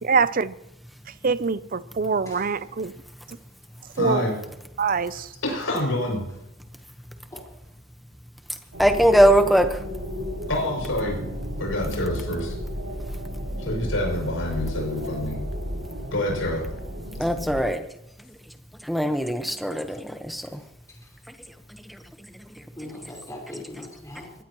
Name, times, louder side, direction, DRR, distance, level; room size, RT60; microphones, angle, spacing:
voice 1, 0.0-0.5 1.2-2.9 3.3-3.4 4.0-4.2 4.8-5.3, right 5 dB, 45° right, 15 dB, 0.6 m, -24 dB
voice 2, 4.0-4.3 5.4-6.2 10.5-11.2 11.6-12.6 13.6-15.4 16.1-16.6, left 1 dB, 80° left, 0 dB, 6.9 m, -27 dB
sound 1, 8.7-17.6, left 1 dB, 75° right, 6.8 m, -32 dB
voice 3, 8.8-9.8 17.2-17.8 18.9-20.4, equal, ahead, 7 dB, 1.1 m, -20 dB
voice 4, 22.8-24.3, left 1 dB, 15° left, -4 dB, 4.6 m, -41 dB
22.5 x 17.0 x 3.1 m, 0.86 s
head